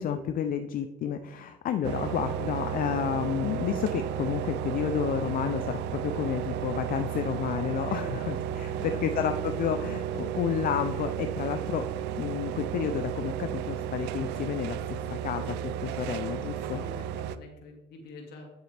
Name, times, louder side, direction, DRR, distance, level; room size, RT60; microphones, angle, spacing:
voice 1, 0.0-8.7 9.0-11.9 12.2-16.8, left 9 dB, 55° left, 8 dB, 0.5 m, -31 dB
sound 1, 1.8-17.4, right 9 dB, 90° right, 0.4 m, -33 dB
voice 2, 7.9-9.1 16.6-18.5, left 2 dB, 75° left, 2 dB, 2.2 m, -46 dB
9.8 x 7.5 x 3.4 m, 1.0 s
cardioid pair, 110°, 17 cm